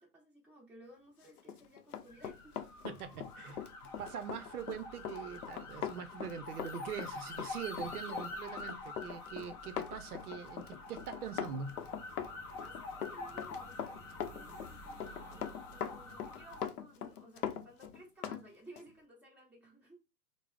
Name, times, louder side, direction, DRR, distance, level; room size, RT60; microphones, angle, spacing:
voice 1, 0.0-2.6 12.5-14.0 14.3-20.0, right 1 dB, 5° right, 1.0 m, -57 dB
Run, 1.4-18.4 18.8-18.9, left 8 dB, 70° left, 0.6 m, -42 dB
sound 1, 2.1-16.6, left 2 dB, 20° left, 0.5 m, -46 dB
voice 2, 2.8-3.6 4.0-11.8, right 7 dB, 70° right, 0.5 m, -43 dB
3.4 x 2.0 x 3.3 m
hypercardioid pair, 120°, 46 cm